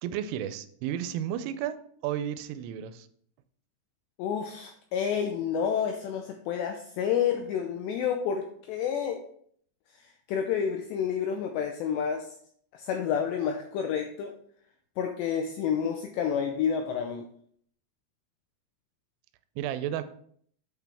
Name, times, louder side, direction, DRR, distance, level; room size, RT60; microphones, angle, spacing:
voice 1, 0.0-3.1 19.6-20.0, right 10 dB, 85° right, 11 dB, 3.1 m, -33 dB
voice 2, 4.2-9.2 9.9-12.3 12.7-14.3 15.0-17.3, left 7 dB, 85° left, 4 dB, 2.4 m, -29 dB
8.4 x 6.0 x 3.5 m, 0.63 s
omnidirectional pair, 5.7 m